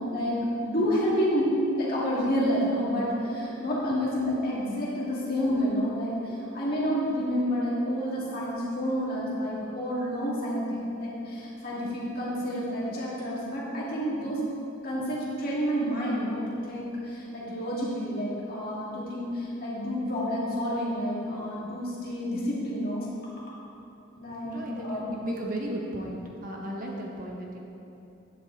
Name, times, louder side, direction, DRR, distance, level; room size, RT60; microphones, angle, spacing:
voice 1, 0.1-1.5 1.8-14.4 14.8-23.1 24.2-25.1, equal, 45° left, -7 dB, 2.3 m, -29 dB
voice 2, 24.4-27.6, right 1 dB, 40° right, -1 dB, 1.0 m, -35 dB
9.7 x 8.1 x 4.0 m, 2.8 s
head